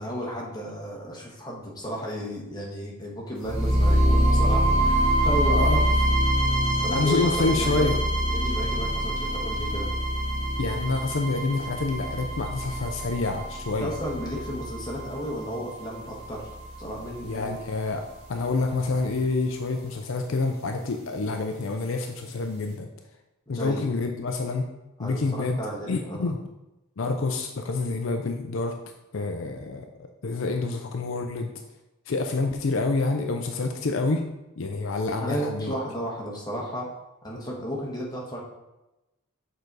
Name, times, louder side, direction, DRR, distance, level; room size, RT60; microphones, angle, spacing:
voice 1, 0.0-5.8 6.8-8.0 8.3-9.9 13.8-16.4 16.8-17.6 23.5-23.8 25.0-26.3 35.2-36.9 37.2-38.4, equal, 20° left, -3 dB, 1.3 m, -33 dB
sound 1, 3.4-17.4, right 1 dB, 25° right, 2.0 m, -25 dB
voice 2, 5.5-5.8 6.9-8.0 10.6-13.9 17.2-18.0 18.3-22.9 23.5-24.6 25.0-25.6 25.9-26.4 27.0-28.8 29.1-29.9 30.2-31.5 32.1-34.2 34.6-35.8, left 3 dB, 65° left, 4 dB, 0.5 m, -27 dB
6.7 x 3.9 x 4.7 m, 0.99 s
head